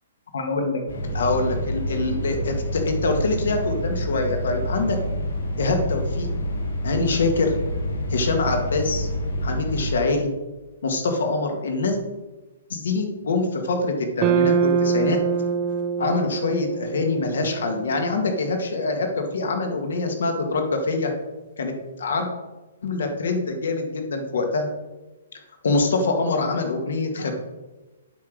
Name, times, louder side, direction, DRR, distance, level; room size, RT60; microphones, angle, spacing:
voice 1, 0.3-0.8 1.1-5.0 5.6-6.3 6.8-7.5 8.1-9.1 9.4-10.3 10.8-12.0 12.7-15.2 16.0-21.1 21.6-21.7 22.0-22.3 22.8-24.7 25.6-27.3, left 3 dB, 70° left, 4 dB, 1.9 m, -24 dB
sound 1, 0.9-9.9, equal, 90° left, 2.9 m, -28 dB
sound 2, 14.2-18.5, right 6 dB, 20° right, 0.4 m, -24 dB
8.2 x 5.2 x 6.3 m, 1.1 s
hypercardioid pair, 170°, 0 cm